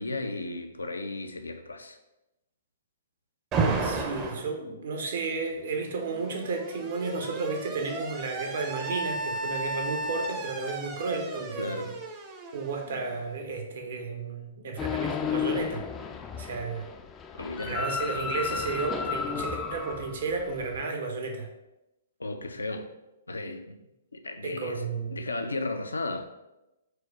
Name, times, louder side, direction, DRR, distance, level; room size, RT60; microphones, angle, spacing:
voice 1, 0.0-2.0 11.6-11.9 17.4-17.7 22.2-22.9 23.3-23.8 24.1-24.8 25.1-26.3, left 2 dB, 90° left, 6 dB, 0.5 m, -34 dB
Alarm, 3.5-4.5 5.7-13.4, right 3 dB, 25° right, 0.6 m, -33 dB
voice 2, 3.8-11.9 12.5-15.8 16.4-16.9 17.6-21.5 24.4-25.2, right 4 dB, 60° right, 3 dB, 0.9 m, -33 dB
sound 1, 14.8-20.8, left 6 dB, 20° left, 0.3 m, -33 dB
4.9 x 2.0 x 4.5 m, 0.95 s
hypercardioid pair, 125°, 0 cm